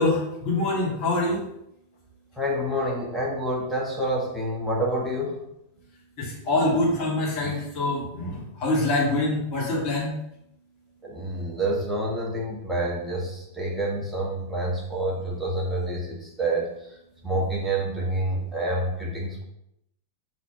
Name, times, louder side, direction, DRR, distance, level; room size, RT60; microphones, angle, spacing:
voice 1, 0.0-1.4 6.2-10.1, left 2 dB, 40° left, -5 dB, 2.2 m, -25 dB
voice 2, 2.4-5.4 11.0-16.7 17.2-19.4, right 1 dB, 5° right, -4 dB, 1.6 m, -28 dB
4.3 x 4.2 x 5.4 m, 0.79 s
figure-of-eight pair, 90°, 0 cm